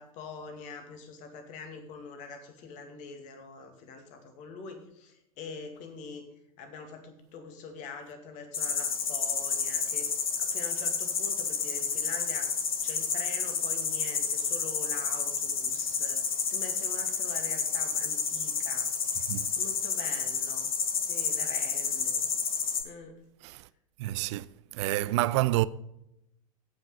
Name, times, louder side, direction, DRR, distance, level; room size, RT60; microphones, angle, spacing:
voice 1, 0.0-6.2 6.6-10.1 10.4-12.5 12.8-18.9 19.2-20.7 21.0-22.3 22.8-23.2, left 4 dB, 45° left, 2.3 m, -44 dB
sound 1, 8.5-22.8, left 6 dB, 70° left, 1.6 m, -30 dB
voice 2, 24.0-24.5 24.7-25.7, right 17 dB, 50° right, 0.5 m, -28 dB
16.0 x 5.8 x 4.9 m
figure-of-eight pair, 85°, 19 cm